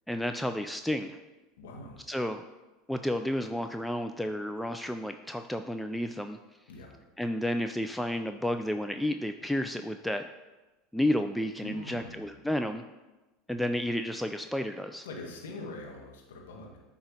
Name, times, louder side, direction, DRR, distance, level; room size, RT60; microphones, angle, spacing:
voice 1, 0.1-1.2 2.1-2.4 2.9-6.4 7.2-10.2 10.9-12.8 13.5-15.1, left 1 dB, ahead, 6 dB, 0.3 m, -31 dB
voice 2, 1.6-2.0 6.7-7.0 11.6-12.3 15.0-16.8, left 2 dB, 75° left, 0 dB, 1.2 m, -43 dB
8.7 x 2.9 x 5.3 m, 1.1 s
hypercardioid pair, 80°, 0 cm